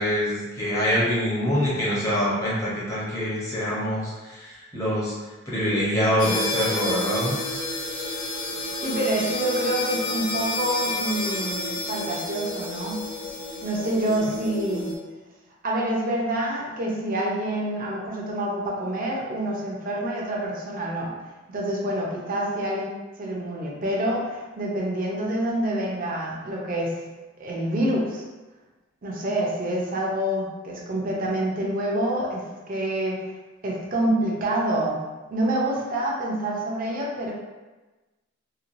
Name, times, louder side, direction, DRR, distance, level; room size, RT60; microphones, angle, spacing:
voice 1, 0.0-5.1 5.5-7.4, equal, 15° left, -8 dB, 0.8 m, -25 dB
sound 1, 6.2-14.9, left 2 dB, 65° left, 0.9 m, -30 dB
voice 2, 8.8-13.0 13.6-14.9 15.6-21.1 21.5-22.9 23.2-27.0 27.4-28.2 29.0-33.3 33.6-35.0 35.3-37.3, right 1 dB, 40° right, -3 dB, 0.6 m, -27 dB
3.0 x 2.2 x 2.6 m, 1.2 s
head